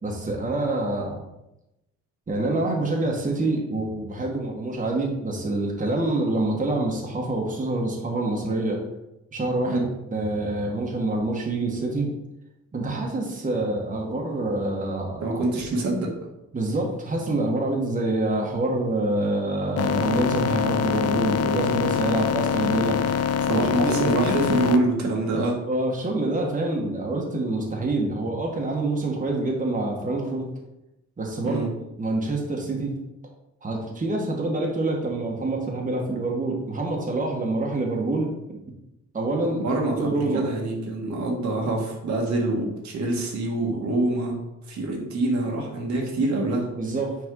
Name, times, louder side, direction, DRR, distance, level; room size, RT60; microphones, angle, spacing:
voice 1, 0.0-1.2 2.3-8.8 9.3-12.1 12.7-15.4 16.5-23.2 23.5-24.1 25.3-30.5 31.2-31.6 32.0-33.0 33.6-38.3 39.1-40.4 46.8-47.3, right 2 dB, 25° right, -1 dB, 1.3 m, -26 dB
voice 2, 15.2-16.1 23.5-25.6 31.4-31.7 39.6-44.4 44.7-46.7, right 2 dB, 65° right, -1 dB, 1.6 m, -25 dB
sound 1, 19.8-24.8, left 7 dB, 55° left, 0.6 m, -24 dB
6.3 x 4.2 x 3.8 m, 0.91 s
cardioid pair, 90°, 30 cm